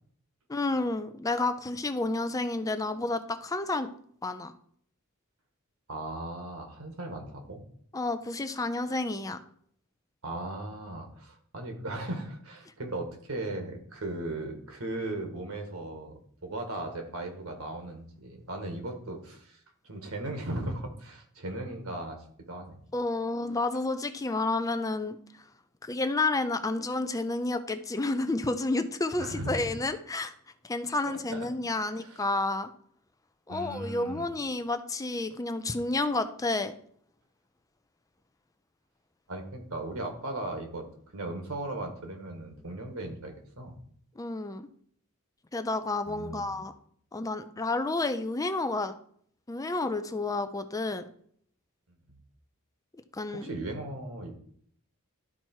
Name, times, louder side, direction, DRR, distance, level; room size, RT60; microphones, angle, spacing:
voice 1, 0.5-3.9 4.2-4.5 7.9-9.4 22.9-25.2 25.8-30.3 30.6-32.7 33.5-36.7 44.2-44.7 45.5-46.7 47.1-48.9 49.5-51.0 53.1-53.5, left 2 dB, 15° left, 9 dB, 0.5 m, -30 dB
voice 2, 5.9-7.6 10.2-22.8 29.2-29.7 31.1-31.5 32.0-32.2 33.5-34.2 39.3-40.9 41.1-43.7 46.1-46.5 52.1-52.2 53.3-54.3, right 2 dB, 70° right, 4 dB, 1.8 m, -37 dB
12.0 x 4.4 x 4.5 m, 0.62 s
head